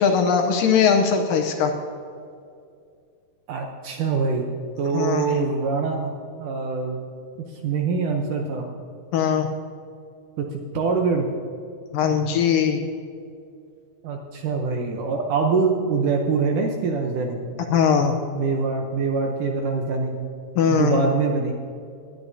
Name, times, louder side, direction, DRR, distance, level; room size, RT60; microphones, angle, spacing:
voice 1, 0.0-1.7 4.9-5.3 9.1-9.5 11.9-12.8 17.7-18.2 20.6-21.0, left 6 dB, 75° left, 4 dB, 2.1 m, -20 dB
voice 2, 3.5-4.5 4.8-6.1 6.4-7.0 7.5-8.6 10.4-11.3 14.0-17.4 18.3-20.2 20.7-21.5, right 4 dB, 75° right, 2 dB, 2.0 m, -24 dB
20.0 x 11.0 x 2.7 m, 2.4 s
omnidirectional pair, 4.4 m